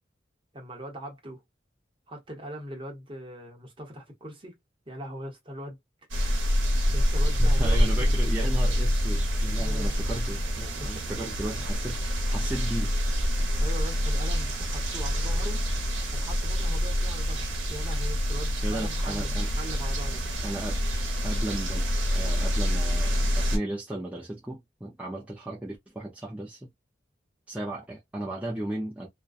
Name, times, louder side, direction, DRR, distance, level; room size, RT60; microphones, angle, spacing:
voice 1, 0.5-1.4 2.1-4.6 4.9-5.8 6.9-8.3 9.6-10.0 10.8-11.0 13.6-15.7 16.1-20.2, equal, 30° right, 0.8 m, -41 dB
sound 1, 6.1-23.6, equal, 90° right, 0.8 m, -26 dB
voice 2, 7.4-13.0 15.2-15.3 18.6-19.5 20.4-20.8 21.2-26.7 27.5-29.1, right 1 dB, 5° right, 0.4 m, -35 dB
2.4 x 2.2 x 2.3 m
head